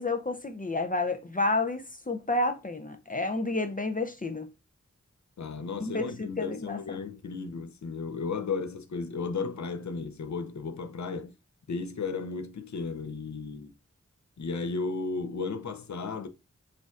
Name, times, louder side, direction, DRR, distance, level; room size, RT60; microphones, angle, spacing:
voice 1, 0.0-4.5 5.8-6.8, left 2 dB, 30° left, 0.5 m, -30 dB
voice 2, 5.4-11.3 11.7-13.7 14.4-16.3, left 4 dB, 70° left, 0.6 m, -34 dB
6.3 x 2.6 x 2.3 m
wide cardioid pair, 45°, 29 cm